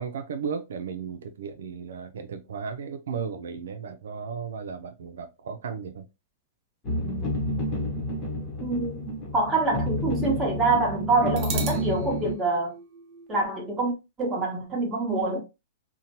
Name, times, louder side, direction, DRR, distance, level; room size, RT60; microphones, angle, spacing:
voice 1, 0.0-6.1, right 6 dB, 85° right, 0.4 m, -35 dB
sound 1, 6.8-12.3, left 1 dB, 25° left, 0.9 m, -29 dB
sound 2, 8.0-9.7 10.0-10.1 11.4-13.5, right 6 dB, 35° right, 0.6 m, -39 dB
voice 2, 8.6-12.8 13.3-15.4, right 3 dB, 15° right, 1.1 m, -26 dB
2.7 x 2.1 x 2.8 m
hypercardioid pair, 150°, 0 cm